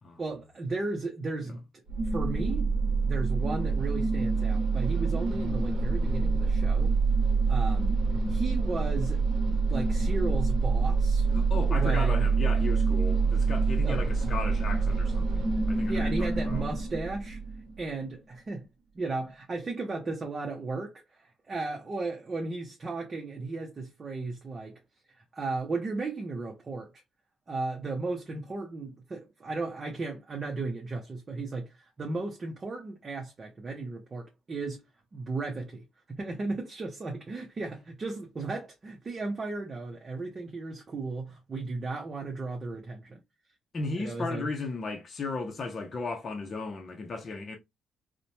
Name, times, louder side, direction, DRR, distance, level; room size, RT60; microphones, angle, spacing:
voice 1, 0.2-1.6 2.1-2.7 3.0-6.9 7.5-8.0 8.3-9.2 9.6-11.3 11.7-12.3 13.8-14.0 15.5-17.4 17.8-18.7 18.9-24.8 25.3-26.9 27.5-34.8 35.1-43.2 44.0-44.5, right 3 dB, 35° right, 0.6 m, -35 dB
sound 1, 1.9-17.8, right 4 dB, 75° right, 0.7 m, -26 dB
voice 2, 11.3-16.7 43.7-47.6, left 3 dB, 40° left, 0.6 m, -36 dB
3.0 x 2.1 x 2.6 m
cardioid pair, 90°, 0 cm